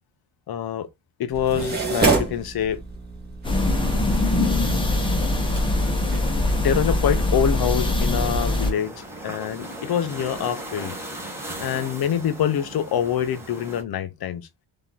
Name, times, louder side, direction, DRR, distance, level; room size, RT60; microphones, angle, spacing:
voice 1, 0.5-0.9 1.2-2.8 6.6-10.9 11.6-14.5, left 9 dB, 55° left, 0.7 m, -25 dB
sound 1, 1.3-6.6, right 4 dB, 20° right, 1.8 m, -28 dB
sound 2, 3.4-8.7, left 2 dB, 10° left, 0.9 m, -22 dB
sound 3, 8.4-13.8, right 1 dB, 5° right, 1.3 m, -37 dB
4.3 x 2.9 x 3.9 m
wide cardioid pair, 150°, 44 cm